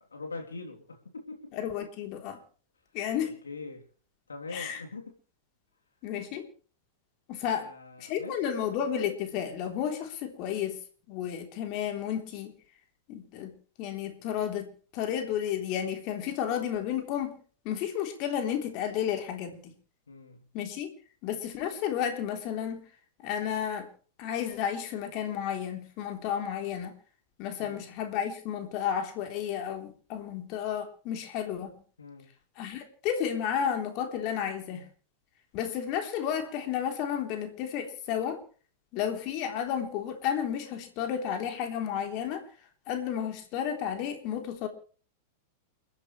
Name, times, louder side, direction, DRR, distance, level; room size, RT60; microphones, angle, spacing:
voice 1, 0.1-1.5 3.2-3.8 4.3-5.1 7.5-8.4 20.1-20.5 27.6-27.9 32.0-32.3, left 3 dB, 75° left, 3.4 m, -43 dB
voice 2, 1.5-2.4 2.9-3.3 4.5-4.8 6.0-6.5 7.3-7.7 8.0-10.8 11.1-12.5 13.1-13.5 13.8-17.4 17.7-19.7 20.5-20.9 21.2-22.8 23.2-23.9 24.2-27.0 27.4-31.7 32.6-34.9 35.5-38.4 38.9-42.4 42.9-44.7, left 9 dB, 45° left, 3.6 m, -32 dB
29.5 x 11.0 x 3.3 m
figure-of-eight pair, 95°, 0 cm